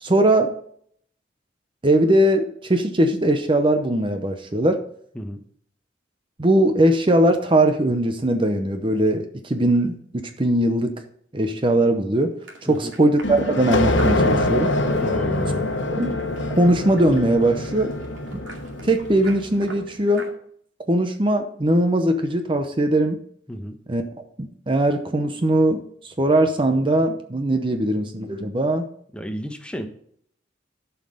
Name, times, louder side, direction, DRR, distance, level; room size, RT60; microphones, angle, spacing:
voice 1, 0.0-0.5 1.8-4.8 6.4-10.9 11.3-12.3 12.7-14.7 16.0-16.2 16.6-17.9 18.3-18.4 18.8-20.2 20.9-23.2 23.9-24.0 24.4-28.8, right 1 dB, 25° right, 7 dB, 0.7 m, -20 dB
sound 1, 12.4-20.3, right 2 dB, 85° right, 2.3 m, -44 dB
sound 2, 13.2-19.6, left 2 dB, 75° left, 1.2 m, -24 dB
voice 2, 15.0-15.7 23.5-23.8 29.1-29.9, equal, 5° left, 6 dB, 0.9 m, -31 dB
11.5 x 5.8 x 5.0 m, 0.64 s
head